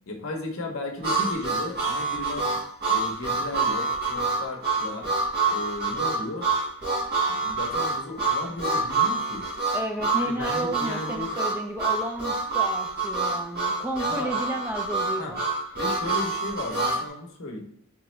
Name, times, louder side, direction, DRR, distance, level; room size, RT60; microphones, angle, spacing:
voice 1, 0.1-2.5 2.9-5.1 5.5-6.5 7.3-9.5 10.2-11.3 14.0-14.3 15.2-15.3 15.7-17.6, left 2 dB, 65° left, 2 dB, 0.7 m, -35 dB
Harmonica, 1.0-17.0, right 3 dB, 45° right, 1.4 m, -26 dB
voice 2, 9.7-15.4, right 1 dB, 10° right, 2 dB, 0.4 m, -32 dB
3.5 x 3.0 x 3.1 m, 0.70 s
head